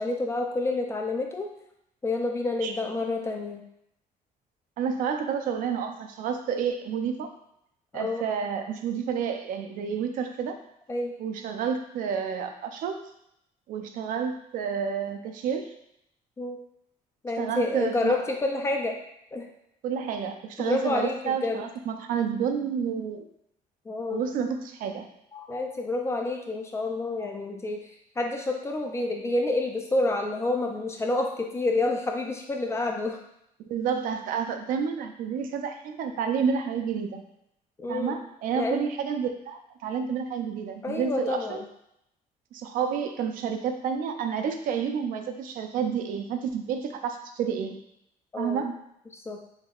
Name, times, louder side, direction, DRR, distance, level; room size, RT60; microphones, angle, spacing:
voice 1, 0.0-1.5 2.0-3.6 7.9-8.3 10.9-11.1 16.4-16.6 17.2-19.0 19.3-19.5 20.6-21.6 23.9-24.3 25.3-27.9 28.2-33.2 37.8-38.1 38.5-38.8 40.8-41.6 48.3-48.6 49.3-49.4, left 2 dB, 20° left, 2 dB, 0.3 m, -28 dB
voice 2, 4.8-7.3 7.9-10.5 11.2-13.0 13.7-15.7 17.4-18.1 19.8-23.3 24.1-25.1 33.7-37.2 37.9-41.6 42.5-47.8 48.4-48.7, right 7 dB, 65° right, 5 dB, 0.4 m, -30 dB
3.4 x 3.3 x 2.3 m, 0.77 s
cardioid pair, 160°, 15 cm